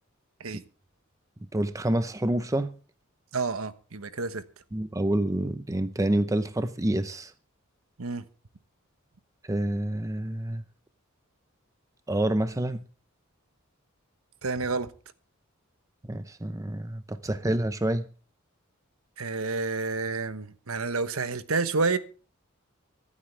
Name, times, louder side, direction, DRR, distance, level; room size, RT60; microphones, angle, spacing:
voice 1, 1.5-2.7 4.7-7.3 9.5-10.6 12.1-12.8 16.1-18.1, right 1 dB, 15° right, 0.7 m, -27 dB
voice 2, 3.3-4.4 8.0-8.2 14.4-14.9 19.2-22.0, right 4 dB, 90° right, 1.1 m, -29 dB
24.5 x 8.7 x 3.3 m
head